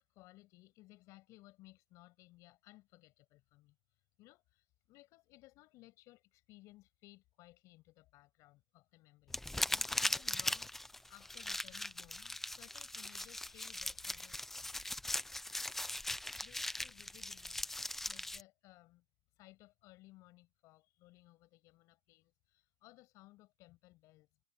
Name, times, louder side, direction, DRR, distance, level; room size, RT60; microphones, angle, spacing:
voice 1, 0.0-9.4 9.7-14.4 15.8-24.3, left 19 dB, 30° left, 8.0 m, -61 dB
sound 1, 9.3-18.4, left 1 dB, 5° left, 0.7 m, -39 dB
supercardioid pair, 170°, 11 cm